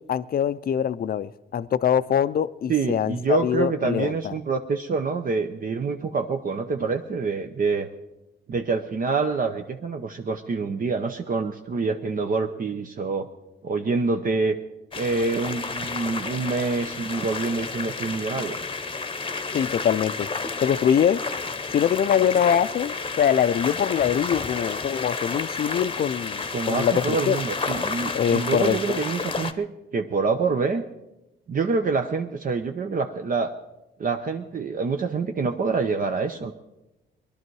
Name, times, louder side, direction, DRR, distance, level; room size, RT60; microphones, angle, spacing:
voice 1, 0.0-4.3 19.5-20.3 20.6-21.2 21.7-27.4 28.1-29.0, left 9 dB, 50° left, 0.5 m, -23 dB
voice 2, 2.7-7.9 8.5-13.3 13.6-14.6 15.0-18.6 26.5-30.8 31.5-33.5 34.0-36.5, right 4 dB, 45° right, 0.8 m, -26 dB
sound 1, 14.9-29.5, left 4 dB, 25° left, 0.9 m, -31 dB
20.5 x 11.5 x 4.7 m
cardioid pair, 115°, 20 cm